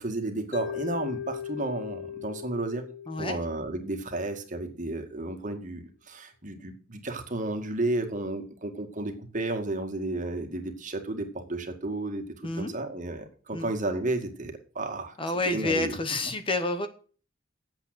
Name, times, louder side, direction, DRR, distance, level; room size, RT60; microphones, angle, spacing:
voice 1, 0.0-2.9 3.2-12.3 12.6-15.1 15.5-16.0, right 2 dB, 40° right, 5 dB, 2.1 m, -32 dB
Mallet percussion, 0.5-4.6, left 9 dB, 65° left, 0.9 m, -39 dB
voice 2, 3.1-3.4 12.4-12.7 13.5-13.7 15.2-16.9, left 2 dB, 25° left, 9 dB, 1.0 m, -29 dB
8.8 x 7.9 x 7.9 m, 0.40 s
head